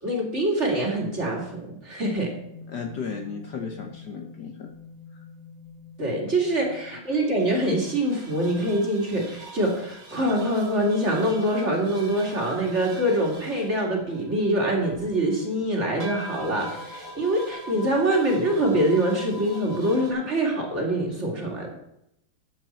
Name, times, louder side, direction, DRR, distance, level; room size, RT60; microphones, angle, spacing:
voice 1, 0.0-2.3 6.0-21.7, right 1 dB, 30° right, -1 dB, 2.5 m, -24 dB
sound 1, 2.4-20.1, equal, 65° right, 3.6 m, -44 dB
voice 2, 2.7-4.7, left 5 dB, 60° left, 3 dB, 1.3 m, -35 dB
13.0 x 7.7 x 4.4 m, 0.80 s
omnidirectional pair, 2.4 m